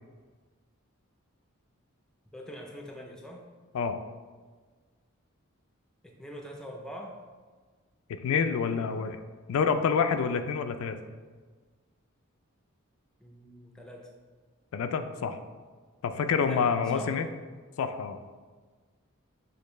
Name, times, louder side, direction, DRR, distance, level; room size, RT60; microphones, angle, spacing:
voice 1, 2.3-3.4 6.0-7.2 13.2-14.1 16.4-17.2, equal, 5° left, 0 dB, 0.4 m, -43 dB
voice 2, 8.1-9.2 9.5-11.0 14.7-15.4 16.0-17.3 17.8-18.2, left 6 dB, 75° left, 8 dB, 0.3 m, -27 dB
6.4 x 2.6 x 3.1 m, 1.4 s
head